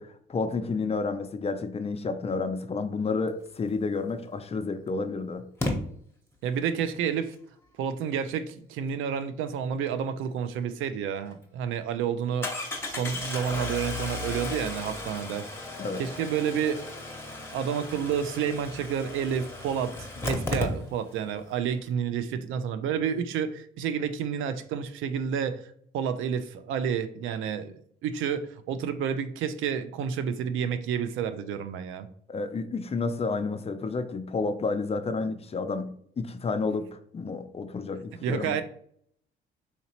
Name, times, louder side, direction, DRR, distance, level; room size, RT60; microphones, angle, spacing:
voice 1, 0.0-5.4 15.8-16.0 32.3-35.9 36.2-38.6, left 4 dB, 30° left, 8 dB, 0.5 m, -30 dB
Engine starting, 4.1-4.2 5.6-5.7 10.8-10.9 11.3-11.4 12.4-21.2 21.5-21.6 21.8-21.9, left 2 dB, 10° left, 0.9 m, -34 dB
voice 2, 6.4-7.4 7.8-12.5 12.8-15.5 16.0-16.8 17.5-32.1 38.2-38.6, right 7 dB, 85° right, 11 dB, 0.4 m, -30 dB
4.0 x 2.8 x 2.9 m, 0.64 s
cardioid pair, 90°, 20 cm